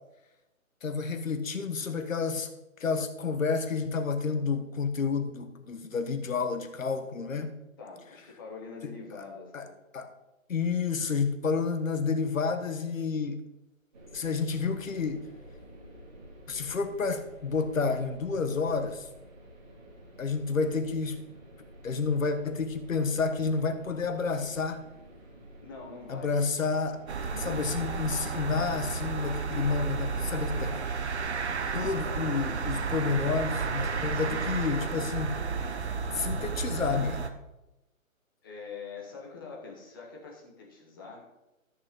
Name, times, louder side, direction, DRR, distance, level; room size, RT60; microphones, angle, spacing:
voice 1, 0.8-2.5 2.8-7.6 9.5-9.6 9.9-10.1 10.5-13.4 14.1-15.3 16.5-19.1 20.2-21.2 21.8-24.8 26.1-27.0 27.4-30.7 31.7-35.4 36.1-37.3, left 5 dB, 70° left, 8 dB, 1.3 m, -30 dB
voice 2, 7.8-9.7 25.6-26.3 27.0-27.7 30.5-30.8 31.6-32.0 34.1-34.5 38.4-41.2, left 4 dB, 15° left, -1 dB, 1.2 m, -44 dB
sound 1, 13.9-28.7, right 1 dB, 30° right, 2.0 m, -51 dB
sound 2, 27.1-37.3, right 5 dB, 50° right, 0.9 m, -32 dB
13.5 x 6.4 x 3.7 m, 0.95 s
hypercardioid pair, 170°, 42 cm